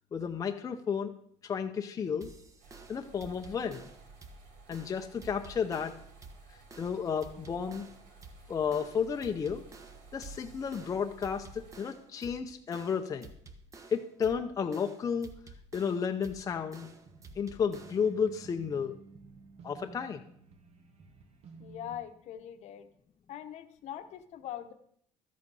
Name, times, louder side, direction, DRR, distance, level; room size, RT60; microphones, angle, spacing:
voice 1, 0.1-1.1 1.4-2.3 2.9-3.8 4.7-6.0 6.8-7.8 8.5-9.6 10.1-13.3 13.9-15.3 15.7-16.9 17.4-19.0 19.6-20.2, left 6 dB, 25° left, 4 dB, 0.7 m, -32 dB
sound 1, 2.2-18.2, right 3 dB, 25° right, 1.0 m, -52 dB
sound 2, 2.6-11.8, right 4 dB, 75° right, 3.6 m, -54 dB
sound 3, 16.3-22.0, right 4 dB, 50° right, 1.3 m, -53 dB
voice 2, 21.6-22.9 23.3-24.7, left 11 dB, 60° left, 9 dB, 1.0 m, -42 dB
12.5 x 8.1 x 5.4 m, 0.66 s
cardioid pair, 145°, 13 cm